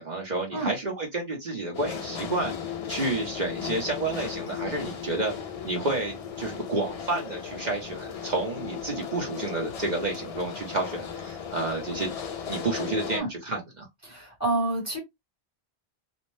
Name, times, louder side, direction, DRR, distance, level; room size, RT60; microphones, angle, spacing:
voice 1, 0.0-2.5 2.9-5.3 5.6-12.1 12.4-13.9, right 2 dB, 45° right, 0.9 m, -30 dB
sound 1, 1.7-13.2, left 7 dB, 50° left, 0.4 m, -36 dB
voice 2, 14.0-15.0, right 2 dB, 15° left, 0.9 m, -28 dB
2.6 x 2.0 x 3.0 m
omnidirectional pair, 1.1 m